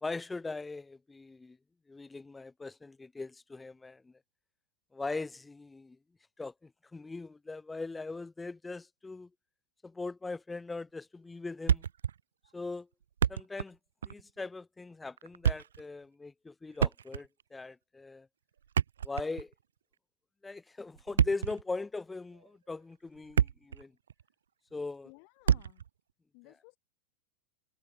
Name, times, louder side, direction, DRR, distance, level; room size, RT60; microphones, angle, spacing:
voice 1, 0.0-1.6 1.9-4.1 4.9-6.0 6.4-9.3 9.8-11.8 12.5-12.9 13.3-13.8 14.1-18.3 19.0-19.5 20.4-23.9 24.7-25.1, left 3 dB, 10° left, 0.6 m, -40 dB
Thump thud, 11.7-12.2 12.4-12.5 13.0-13.7 14.0-14.2 15.2-15.8 16.7-17.4 18.6-19.5 21.0-21.6 22.3-22.5 23.0-23.8 24.1-24.2 25.5-25.9, right 8 dB, 65° right, 0.5 m, -28 dB
voice 2, 25.0-25.8 26.3-26.8, left 40 dB or more, 45° left, 5.4 m, -57 dB
figure-of-eight pair, 90°, 0 cm